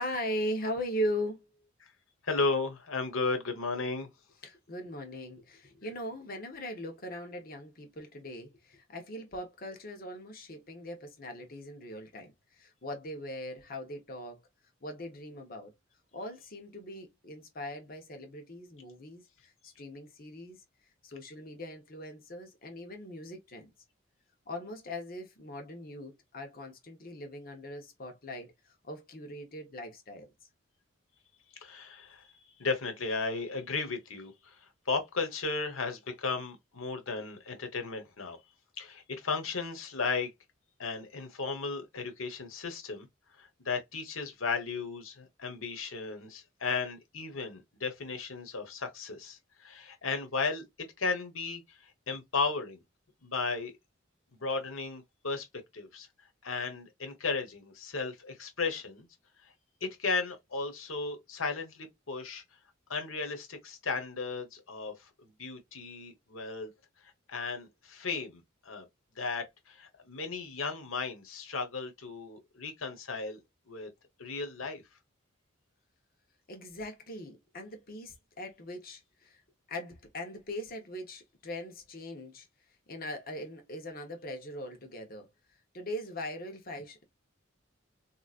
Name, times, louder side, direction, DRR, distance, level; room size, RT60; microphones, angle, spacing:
voice 1, 0.0-1.5 4.4-14.4 14.8-15.7 16.1-20.6 21.0-23.7 24.5-30.3 76.5-79.4 79.7-82.5 82.9-85.3 85.7-87.0, equal, 45° left, 1.2 m, -40 dB
voice 2, 2.2-4.1 31.5-32.3 32.6-38.4 38.8-40.3 40.8-43.1 43.4-52.8 53.2-53.7 54.3-55.5 55.7-56.1 56.4-59.1 59.8-62.4 62.9-66.7 67.3-68.8 69.1-73.4 73.7-73.9 74.2-74.8, left 4 dB, 90° left, 1.2 m, -35 dB
3.7 x 3.1 x 2.5 m
head